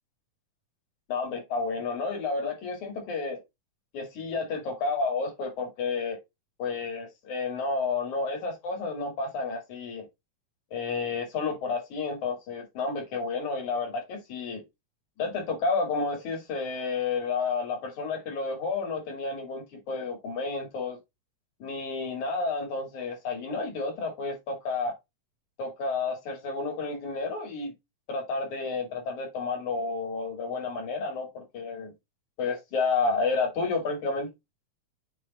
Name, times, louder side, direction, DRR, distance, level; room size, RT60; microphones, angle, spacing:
voice 1, 1.1-3.4 3.9-6.2 6.6-10.1 10.7-14.6 15.2-21.0 21.6-24.9 25.6-27.7 28.1-31.9 32.4-34.3, left 4 dB, 75° left, 3.9 m, -31 dB
7.4 x 3.5 x 4.2 m
omnidirectional pair, 3.4 m